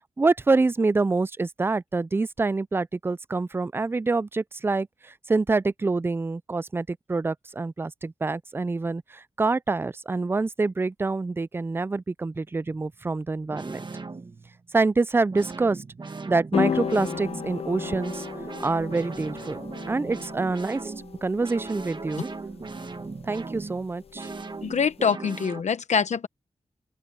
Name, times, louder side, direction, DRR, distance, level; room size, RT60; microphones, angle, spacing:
voice 1, 0.2-13.8 14.7-15.8 16.3-18.3 18.6-19.6 19.9-20.9 21.2-22.3 23.2-24.3, right 3 dB, 20° right, 0.3 m, -26 dB
sound 1, 12.6-12.9 13.5-14.7 15.3-25.6, right 3 dB, 40° right, 1.3 m, -38 dB
sound 2, 16.5-25.0, left 7 dB, 55° left, 0.5 m, -34 dB
voice 2, 24.6-26.3, left 6 dB, 75° left, 1.0 m, -24 dB
open air
wide cardioid pair, 105°, 12 cm